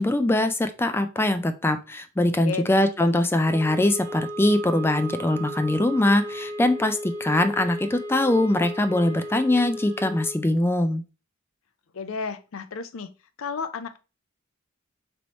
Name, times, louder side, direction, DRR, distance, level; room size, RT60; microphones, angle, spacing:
voice 1, 0.0-11.0, left 1 dB, 10° left, 0.3 m, -22 dB
sound 1, 3.4-10.4, equal, 15° right, 0.7 m, -35 dB
voice 2, 11.9-13.1 13.4-14.0, left 5 dB, 70° left, 0.5 m, -32 dB
3.1 x 3.1 x 4.0 m
head